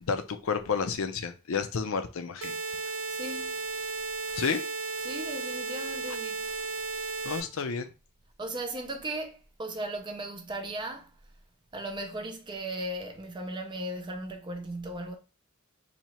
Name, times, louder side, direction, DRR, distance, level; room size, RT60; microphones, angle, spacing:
voice 1, 0.0-2.6 4.4-4.6 7.2-7.9, left 5 dB, 70° left, 0.5 m, -31 dB
sound 1, 2.4-7.4, right 4 dB, 65° right, 0.7 m, -34 dB
voice 2, 3.1-3.5 5.0-6.5 8.4-11.1 11.7-15.2, right 1 dB, 20° right, 0.4 m, -37 dB
2.9 x 2.8 x 4.3 m
head